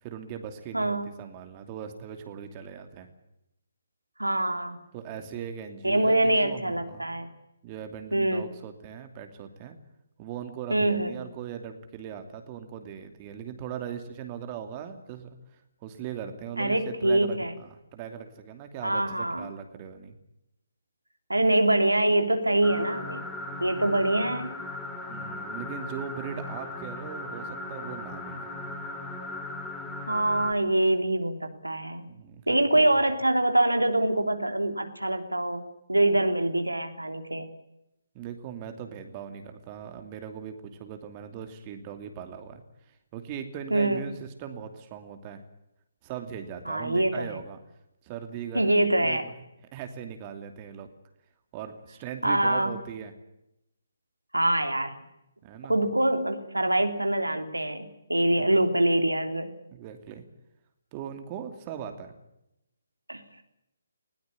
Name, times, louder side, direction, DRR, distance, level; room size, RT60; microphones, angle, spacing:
voice 1, 0.0-3.1 4.9-7.0 7.6-9.8 10.2-20.2 25.1-28.5 32.1-33.0 38.1-42.6 42.9-45.4 46.0-47.6 48.0-48.7 49.0-49.2 49.7-50.9 51.5-53.1 55.4-55.7 58.2-58.5 59.7-60.2 60.9-62.1, right 8 dB, 30° right, 6 dB, 2.7 m, -39 dB
voice 2, 0.7-1.1 4.2-4.8 5.8-7.3 8.1-8.5 10.7-11.1 16.6-17.5 18.8-19.5 21.3-23.2 23.6-24.5 30.1-32.1 32.5-37.5 43.7-44.0 46.6-47.4 48.5-49.2 52.2-52.8 54.3-54.9 55.7-59.5 63.1-63.2, right 1 dB, 90° right, 6 dB, 3.1 m, -24 dB
sound 1, 22.6-30.5, left 2 dB, 10° left, 4.7 m, -37 dB
20.5 x 18.0 x 9.6 m, 0.85 s
figure-of-eight pair, 140°, 0 cm